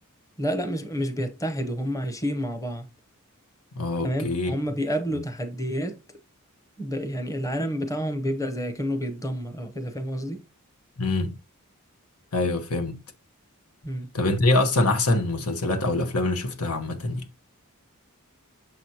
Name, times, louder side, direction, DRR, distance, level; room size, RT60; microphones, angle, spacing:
voice 1, 0.4-2.9 4.0-6.2 6.8-10.4 13.8-14.1, equal, 15° left, 0.9 m, -29 dB
voice 2, 3.7-4.5 11.0-11.4 12.3-13.0 14.1-17.2, left 2 dB, 85° left, 1.3 m, -24 dB
7.0 x 6.2 x 2.8 m
head